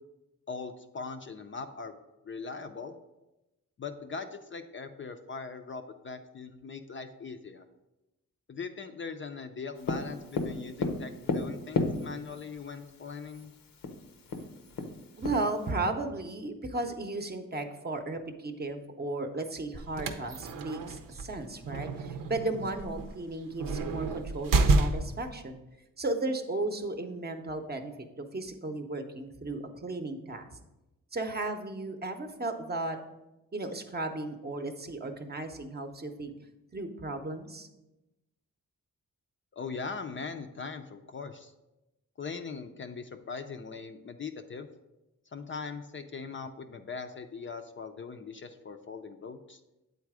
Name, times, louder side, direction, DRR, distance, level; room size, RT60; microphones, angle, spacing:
voice 1, 0.5-2.0 2.2-3.0 3.8-7.6 8.5-13.5 39.5-41.5 42.2-44.7 45.3-49.6, left 5 dB, 35° left, 7 dB, 0.4 m, -40 dB
Tap, 9.9-12.5 13.4-13.5 13.8-14.0 14.3-15.7, left 3 dB, 80° left, 0.8 m, -32 dB
voice 2, 15.2-25.6 26.0-27.9 28.2-30.5 31.1-33.0 33.5-36.3 36.7-37.7, right 2 dB, 30° right, 6 dB, 0.7 m, -35 dB
sound 1, 19.7-25.3, right 3 dB, 80° right, 0.7 m, -30 dB
8.2 x 4.0 x 4.8 m, 0.98 s
wide cardioid pair, 100°, 33 cm